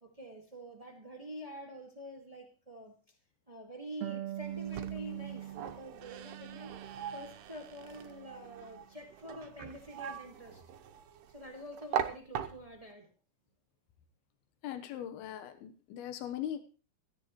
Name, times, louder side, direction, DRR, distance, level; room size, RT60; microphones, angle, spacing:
voice 1, 0.0-3.1 3.5-10.6 11.3-13.1, equal, 20° right, 1 dB, 0.9 m, -47 dB
Harp, 4.0-7.4 7.7-8.8, right 12 dB, 70° right, 1.4 m, -43 dB
sound 1, 4.4-12.9, right 9 dB, 85° right, 3.0 m, -41 dB
voice 2, 14.6-16.6, left 10 dB, 80° left, 8 dB, 3.0 m, -40 dB
17.0 x 13.0 x 3.1 m, 0.37 s
omnidirectional pair, 4.5 m